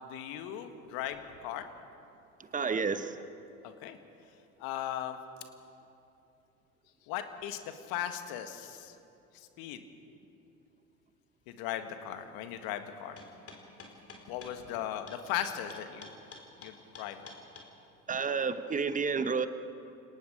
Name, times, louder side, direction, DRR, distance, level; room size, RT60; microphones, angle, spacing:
voice 1, 0.0-1.7 3.6-4.0 4.6-5.2 7.1-9.0 9.3-9.8 11.5-13.2 14.3-16.1 16.6-17.2, left 11 dB, 55° left, 8 dB, 1.8 m, -38 dB
voice 2, 2.5-3.2 18.1-19.5, right 5 dB, 20° right, 12 dB, 1.0 m, -30 dB
sound 1, 13.2-17.7, left 4 dB, 30° left, 3.9 m, -49 dB
29.0 x 18.5 x 5.2 m, 2.8 s
figure-of-eight pair, 75°, 43 cm